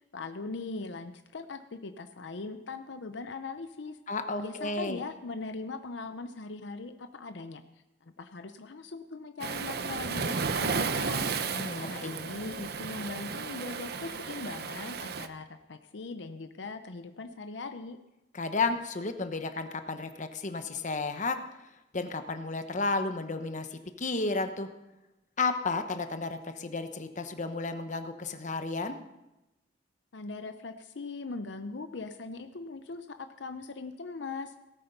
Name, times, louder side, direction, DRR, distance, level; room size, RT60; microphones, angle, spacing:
voice 1, 0.1-4.0 4.4-7.6 8.0-18.0 30.1-34.5, left 3 dB, 75° left, 9 dB, 0.7 m, -40 dB
voice 2, 4.1-5.0 11.5-12.1 18.3-21.6 21.9-24.7 25.4-29.0, left 3 dB, 45° left, 8 dB, 1.0 m, -32 dB
Waves surf, 9.4-15.3, right 5 dB, 60° right, 0.8 m, -33 dB
17.5 x 8.8 x 5.4 m, 0.96 s
head